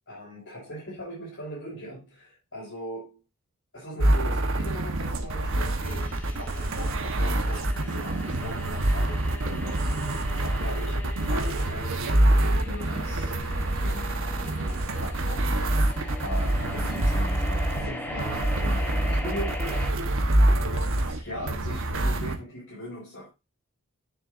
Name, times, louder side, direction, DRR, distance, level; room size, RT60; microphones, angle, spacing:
voice 1, 0.1-3.2 3.7-10.0 10.4-10.9 11.3-13.3 13.8-15.9 16.2-20.0 20.5-23.3, equal, 60° left, 5.6 m, -40 dB
sound 1, 4.0-22.4, right 1 dB, 65° right, 1.2 m, -26 dB
sound 2, 5.8-19.9, left 1 dB, 10° left, 1.3 m, -40 dB
10.0 x 6.8 x 2.6 m
head